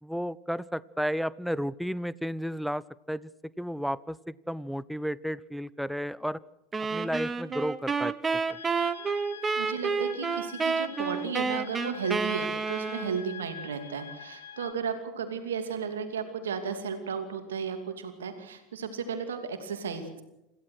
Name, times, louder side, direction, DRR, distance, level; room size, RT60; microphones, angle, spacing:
voice 1, 0.0-3.3 3.6-6.4 6.9-8.1 8.5-8.6, equal, ahead, 21 dB, 0.6 m, -32 dB
sound 1, 6.7-13.3, right 4 dB, 20° right, 1.2 m, -30 dB
sound 2, 8.5-14.7, left 7 dB, 75° left, 1.4 m, -45 dB
voice 2, 9.6-20.2, right 6 dB, 70° right, 7 dB, 2.7 m, -34 dB
26.5 x 15.5 x 6.4 m, 0.89 s
figure-of-eight pair, 80°, 0 cm